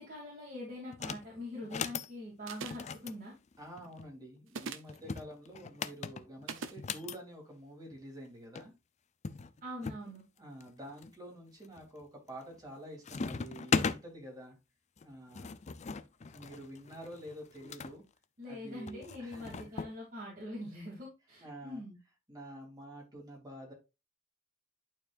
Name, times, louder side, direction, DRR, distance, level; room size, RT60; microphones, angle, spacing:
voice 1, 0.0-3.3 9.6-10.2 18.4-22.0, left 1 dB, 45° right, -4 dB, 2.8 m, -43 dB
sound 1, 0.9-1.3 1.6-2.1 2.7-4.1 4.9-7.2 8.3-8.4 8.5-8.7 9.2-10.0 10.6-11.1 11.6-12.0 12.3-12.8 13.0-14.0 15.0-17.9 18.9-19.9, left 5 dB, 35° left, 0.5 m, -38 dB
sound 2, 2.5-3.0 4.5-5.0 6.5-6.8, right 5 dB, 70° right, 0.8 m, -41 dB
voice 2, 3.6-8.7 10.4-14.6 15.0-15.5 16.3-18.0 18.5-19.7 21.4-21.8 22.3-23.7, right 1 dB, 20° right, -1 dB, 3.2 m, -48 dB
11.0 x 4.7 x 2.5 m, 0.25 s
head